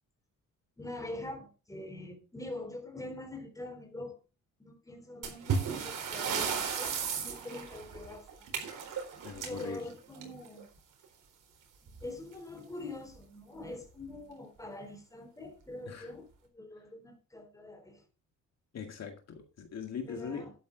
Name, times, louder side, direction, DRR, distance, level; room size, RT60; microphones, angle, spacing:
voice 1, 0.8-4.2 4.6-6.5 6.8-8.5 9.3-10.7 11.8-16.3 16.5-18.0 20.1-20.5, left 2 dB, 10° left, 3.6 m, -44 dB
sound 1, 5.2-10.6 11.9-12.0 12.3-12.4 13.1-13.2 13.9-14.1, right 6 dB, 80° right, 4.1 m, -35 dB
voice 2, 9.2-9.8 15.9-16.1 18.7-20.5, left 6 dB, 55° left, 2.0 m, -41 dB
12.0 x 9.5 x 3.9 m
cardioid pair, 135°, 31 cm